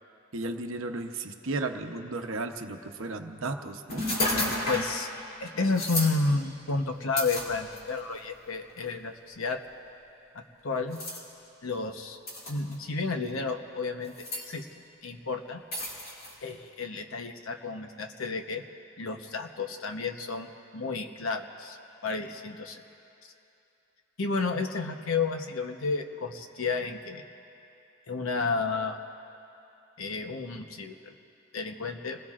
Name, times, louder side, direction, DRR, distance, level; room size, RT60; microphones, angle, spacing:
voice 1, 0.3-4.1, right 2 dB, 70° right, 5 dB, 0.9 m, -34 dB
sound 1, 3.9-5.0 5.7-6.1 7.2-8.0 8.8-8.9 10.9-11.2 12.3-12.7 14.0-14.4 15.7-16.3, left 1 dB, 45° left, 2.8 m, -31 dB
voice 2, 4.7-5.1 5.4-9.6 10.3-11.0 11.6-12.2 12.5-14.2 14.5-14.7 15.0-15.6 16.4-18.6 19.0-21.8 22.0-22.8 24.2-27.2 28.1-29.0 30.0-31.1 31.5-32.2, left 3 dB, 75° left, 5 dB, 1.0 m, -31 dB
28.5 x 20.5 x 2.5 m, 2.8 s
head